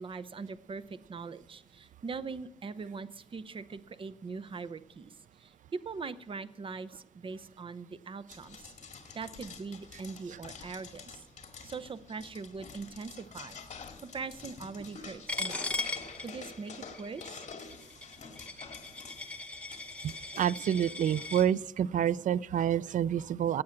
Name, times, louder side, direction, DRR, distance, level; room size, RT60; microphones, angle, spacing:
voice 1, 0.0-5.1 5.4-8.7 9.1-11.2 11.6-13.6 14.0-15.7 16.2-17.5, right 4 dB, 45° right, 14 dB, 0.7 m, -41 dB
sound 1, 8.3-20.7, left 5 dB, 65° left, 2.1 m, -48 dB
Coin (dropping), 15.3-21.5, left 2 dB, 10° left, 0.9 m, -39 dB
voice 2, 20.0-23.6, right 9 dB, 80° right, 20 dB, 0.4 m, -28 dB
16.5 x 8.6 x 5.9 m, 0.88 s
wide cardioid pair, 130°, 13 cm